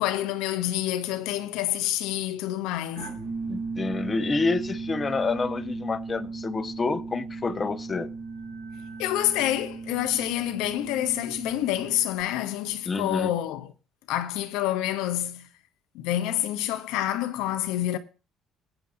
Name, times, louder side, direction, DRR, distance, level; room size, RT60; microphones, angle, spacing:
voice 1, 0.0-3.2 9.0-13.7 14.1-15.5 15.9-18.0, left 13 dB, 90° left, 0.9 m, -28 dB
sound 1, 3.0-12.2, right 4 dB, 80° right, 5.8 m, -36 dB
voice 2, 3.5-8.1 12.9-13.3, left 4 dB, 30° left, 1.2 m, -28 dB
17.5 x 9.1 x 2.7 m
cardioid pair, 90°, 0 cm